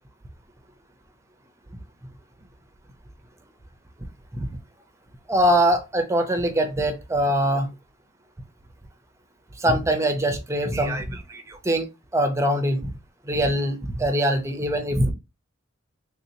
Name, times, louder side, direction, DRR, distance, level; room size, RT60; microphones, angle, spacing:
voice 1, 5.3-7.7 9.6-11.9 12.1-12.9 13.3-15.1, right 1 dB, 15° right, 0.5 m, -23 dB
3.4 x 2.8 x 2.6 m
head